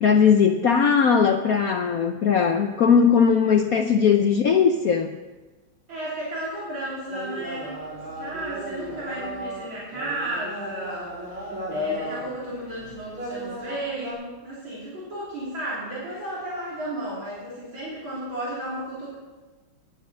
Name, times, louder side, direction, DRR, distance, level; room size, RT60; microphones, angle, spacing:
voice 1, 0.0-5.2, left 6 dB, 85° left, 5 dB, 0.7 m, -19 dB
voice 2, 5.9-7.8 8.1-19.2, right 1 dB, 65° right, -8 dB, 4.1 m, -33 dB
sound 1, 7.1-14.1, right 1 dB, 80° right, 5.9 m, -36 dB
10.5 x 10.5 x 7.4 m, 1.2 s
omnidirectional pair, 2.3 m